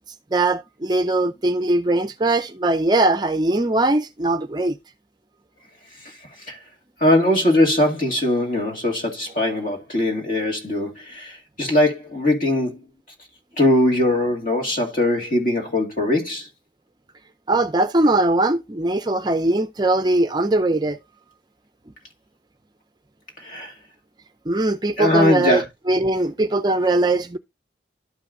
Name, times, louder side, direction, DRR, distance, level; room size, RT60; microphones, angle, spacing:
voice 1, 0.3-4.8 17.5-21.0 24.5-27.4, right 2 dB, 25° right, 0.4 m, -20 dB
voice 2, 7.0-12.8 13.6-16.5 23.4-23.7 25.0-25.6, left 1 dB, 45° left, 2.4 m, -21 dB
12.0 x 5.4 x 2.5 m
head